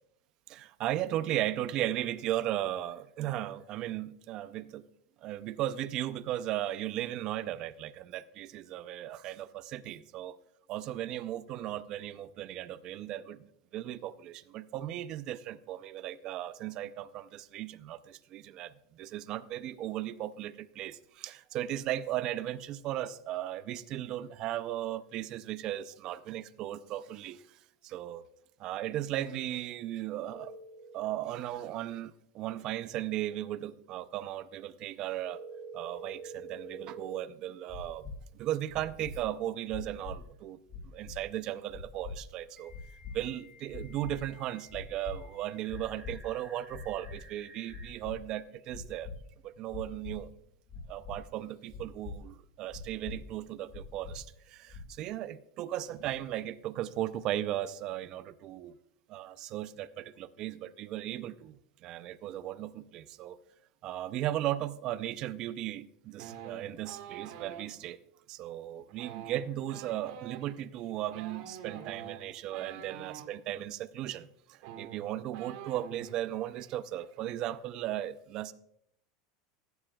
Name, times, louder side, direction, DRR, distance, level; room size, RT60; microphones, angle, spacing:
voice 1, 0.5-4.8 5.2-10.4 10.7-13.5 13.7-27.6 27.8-28.2 28.6-30.5 30.9-35.4 35.7-40.6 40.8-42.7 43.1-49.1 49.4-50.3 50.9-58.8 59.1-63.4 63.8-68.0 68.3-78.5, right 13 dB, 30° right, 13 dB, 0.4 m, -36 dB
sound 1, 30.3-31.2 35.2-37.2 39.8-39.9 42.6-47.9, right 3 dB, 5° right, 2.5 m, -49 dB
sound 2, 37.7-38.1 38.7-39.1 39.7-40.1 40.7-41.2 41.7-42.1 42.7-43.1 43.7-44.1 44.7-45.1 45.7-46.1 46.7-47.1 47.7-48.1 48.7-49.1 49.7-50.1 50.7-51.1 51.7-52.1 52.7-53.1 53.7-54.1 54.7-55.0, left 5 dB, 20° left, 1.5 m, -42 dB
sound 3, 66.2-67.7 68.9-73.3 74.2-74.3 74.5-76.2 76.5-76.8 77.0-77.5, right 9 dB, 50° right, 1.5 m, -46 dB
16.0 x 9.9 x 2.3 m, 0.72 s
supercardioid pair, 180°, 2 cm